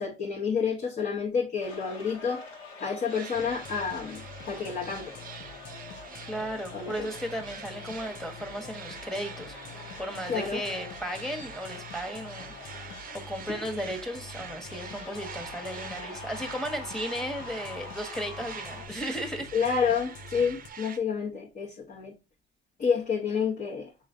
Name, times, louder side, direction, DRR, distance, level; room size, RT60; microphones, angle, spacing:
voice 1, 0.0-2.5 2.8-5.2 6.7-7.1 10.3-10.6 19.5-22.1 22.8-23.9, left 6 dB, 45° left, 1.0 m, -29 dB
sound 1, 1.6-18.9, left 2 dB, 90° left, 1.8 m, -46 dB
sound 2, 3.1-21.0, right 8 dB, 45° right, 0.5 m, -45 dB
sound 3, 3.3-20.7, left 4 dB, 70° left, 0.7 m, -47 dB
voice 2, 6.3-9.5 10.0-12.8 13.1-19.5, equal, ahead, 1.1 m, -35 dB
5.2 x 3.1 x 2.6 m
cardioid pair, 90°, 20 cm